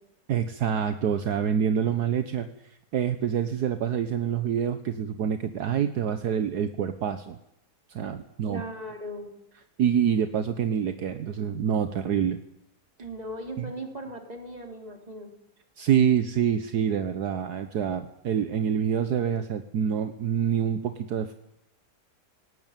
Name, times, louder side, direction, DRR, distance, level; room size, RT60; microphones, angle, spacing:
voice 1, 0.3-7.4 7.9-8.6 9.8-12.4 13.6-13.7 15.8-21.3, right 8 dB, 70° right, 9 dB, 1.5 m, -26 dB
voice 2, 8.4-9.3 13.0-15.3, right 1 dB, 20° right, 3 dB, 3.8 m, -38 dB
18.0 x 18.0 x 9.1 m, 0.80 s
omnidirectional pair, 1.8 m